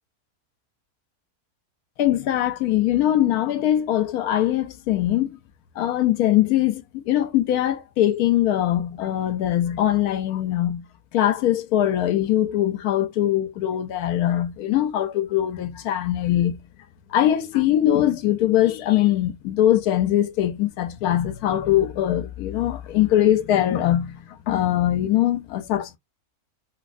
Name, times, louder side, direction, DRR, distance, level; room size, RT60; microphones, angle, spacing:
voice 1, 2.0-5.4 5.8-10.9 11.1-16.6 17.1-26.0, left 12 dB, 85° left, 1.1 m, -22 dB
3.1 x 2.9 x 2.4 m
omnidirectional pair, 1.6 m